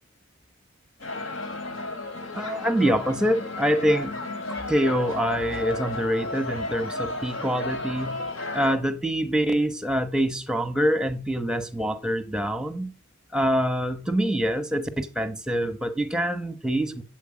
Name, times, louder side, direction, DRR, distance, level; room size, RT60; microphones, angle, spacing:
sound 1, 1.0-8.7, left 2 dB, 75° left, 3.1 m, -33 dB
voice 1, 2.3-4.2 4.7-8.2 8.5-12.9 13.3-17.0, equal, 5° right, 1.1 m, -25 dB
11.0 x 7.9 x 8.8 m
head